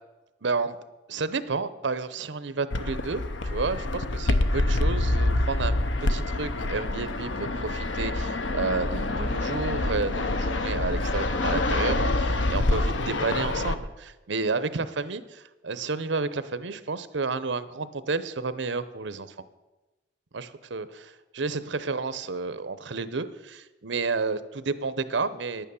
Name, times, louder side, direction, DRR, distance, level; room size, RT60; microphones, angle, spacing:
voice 1, 0.4-0.8 1.1-5.8 6.0-19.3 20.3-25.7, right 4 dB, 75° right, 14 dB, 0.7 m, -31 dB
Fixed-wing aircraft airplane, 2.7-13.7, left 2 dB, 80° left, 0.8 m, -26 dB
11.0 x 9.1 x 7.0 m, 1.1 s
head